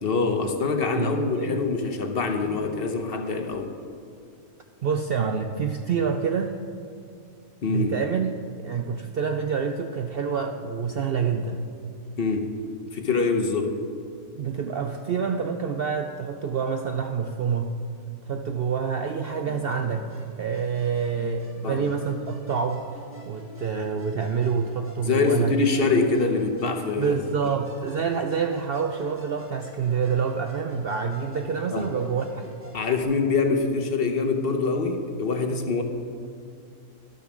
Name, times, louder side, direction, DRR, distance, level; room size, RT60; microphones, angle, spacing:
voice 1, 0.0-3.7 7.6-7.9 12.2-12.5 12.9-13.7 21.6-21.9 25.0-27.5 31.7-31.9 32.7-35.8, left 4 dB, 50° left, 4 dB, 0.8 m, -25 dB
voice 2, 0.9-1.6 4.8-6.6 7.7-11.7 14.3-17.7 18.3-20.1 20.4-22.9 23.3-25.5 27.0-32.5, right 6 dB, 70° right, 5 dB, 0.5 m, -27 dB
Musical instrument, 19.2-33.0, equal, 10° right, 1.2 m, -48 dB
12.0 x 6.9 x 6.1 m, 2.3 s
omnidirectional pair, 1.5 m